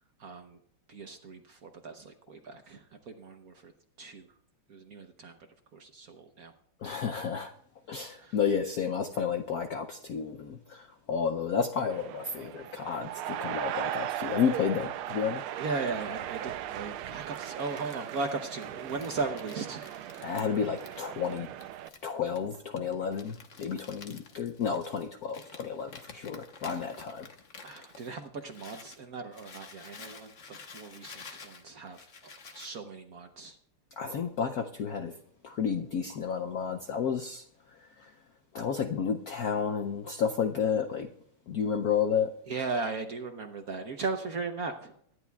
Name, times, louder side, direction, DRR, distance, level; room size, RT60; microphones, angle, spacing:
voice 1, 0.2-0.6 0.9-3.7 4.0-4.3 4.7-5.4 5.7-6.5 8.1-8.3 15.6-19.8 20.1-20.3 27.6-32.1 32.5-33.6 42.5-44.9, right 4 dB, 55° right, 6 dB, 1.0 m, -37 dB
voice 2, 6.8-7.5 7.9-15.4 20.2-21.5 22.0-27.3 34.0-35.2 35.4-37.4 37.7-38.1 38.5-41.1 41.5-42.3, left 7 dB, 70° left, 6 dB, 0.9 m, -31 dB
sound 1, 11.9-21.9, right 12 dB, 80° right, 1.5 m, -38 dB
Crumpling crinkling, 17.4-29.0 29.3-32.8, left 5 dB, 45° left, 1.1 m, -51 dB
24.0 x 11.0 x 2.3 m, 0.67 s
omnidirectional pair, 2.4 m